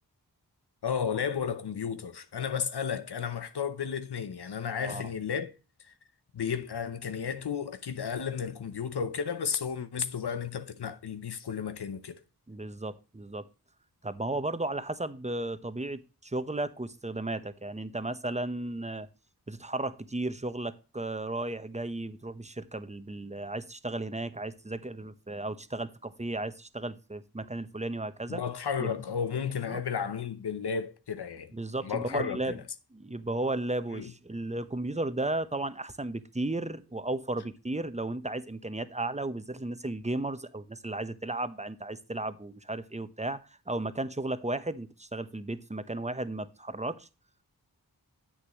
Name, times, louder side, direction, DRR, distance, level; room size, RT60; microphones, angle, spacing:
voice 1, 0.8-5.5 6.3-12.2 28.3-31.5 31.8-32.6 33.9-34.1, left 7 dB, 90° left, 0.8 m, -33 dB
voice 2, 4.8-5.1 12.5-13.4 14.0-19.1 19.5-28.4 28.8-28.9 29.7-29.8 31.5-32.6 32.9-43.4 43.7-47.1, right 2 dB, 15° right, 0.9 m, -34 dB
9.9 x 8.2 x 3.0 m
wide cardioid pair, 45°, 38 cm